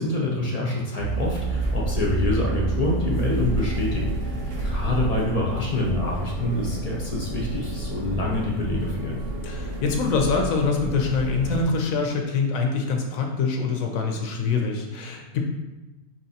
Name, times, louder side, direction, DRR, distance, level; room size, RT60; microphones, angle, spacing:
voice 1, 0.0-9.2, left 2 dB, 40° left, -3 dB, 0.5 m, -26 dB
sound 1, 1.0-11.6, right 2 dB, 45° right, 1.0 m, -29 dB
voice 2, 9.4-15.4, left 4 dB, 70° left, 2 dB, 1.0 m, -25 dB
5.7 x 3.0 x 2.8 m, 1.1 s
omnidirectional pair, 1.6 m